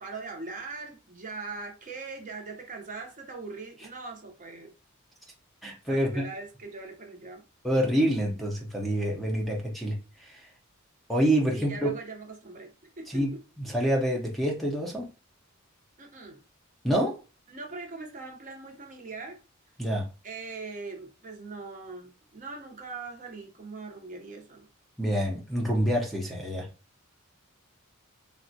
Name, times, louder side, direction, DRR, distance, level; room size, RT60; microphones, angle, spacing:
voice 1, 0.0-4.7 5.9-7.5 7.7-7.8 9.5-9.6 11.5-13.4 16.0-16.4 17.5-19.4 20.2-24.7, right 3 dB, 40° right, 0.7 m, -41 dB
voice 2, 5.6-6.2 7.6-10.4 11.1-11.9 13.1-13.3 13.6-15.1 16.8-17.2 19.8-20.1 25.0-26.7, equal, ahead, 0.6 m, -27 dB
3.5 x 2.1 x 2.7 m
head